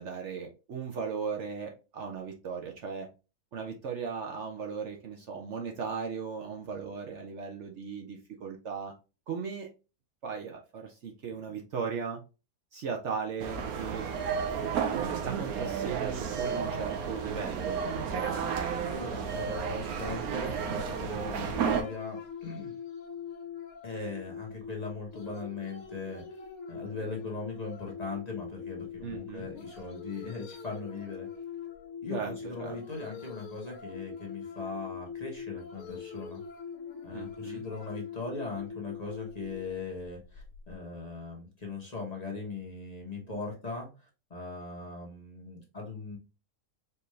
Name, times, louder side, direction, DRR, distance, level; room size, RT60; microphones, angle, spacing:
voice 1, 0.0-3.1 3.5-8.9 9.3-9.7 10.2-12.2 12.7-14.3 14.9-17.8 18.1-18.4 29.0-29.5 32.1-32.8 37.1-37.7, right 6 dB, 60° right, 2 dB, 0.9 m, -37 dB
sound 1, 13.4-21.8, right 6 dB, 85° right, 1.2 m, -32 dB
voice 2, 18.8-22.7 23.8-26.2 26.7-31.3 32.0-36.4 37.0-46.2, left 3 dB, 30° left, -1 dB, 1.1 m, -39 dB
sound 2, 21.2-40.7, left 6 dB, 75° left, 1.3 m, -43 dB
4.5 x 2.6 x 3.2 m, 0.31 s
omnidirectional pair, 1.5 m